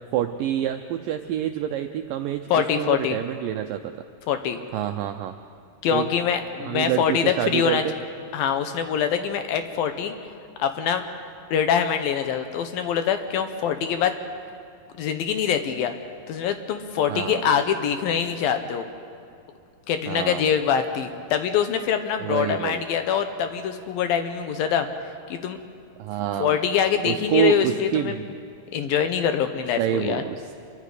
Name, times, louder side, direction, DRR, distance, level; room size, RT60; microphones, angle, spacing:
voice 1, 0.1-3.9 4.7-5.4 5.9-6.1 6.6-7.9 17.1-17.4 20.1-20.5 22.2-22.8 26.0-26.6 27.0-28.3 29.8-30.5, right 11 dB, 85° right, 6 dB, 2.0 m, -27 dB
voice 2, 2.5-3.2 4.3-4.6 5.8-7.8 8.3-10.1 10.6-11.0 11.5-14.1 15.0-15.9 16.3-18.9 19.9-24.9 25.3-25.6 26.4-28.1 28.7-30.2, left 8 dB, 75° left, 8 dB, 2.4 m, -24 dB
27.0 x 23.0 x 5.0 m, 2.3 s
omnidirectional pair, 4.7 m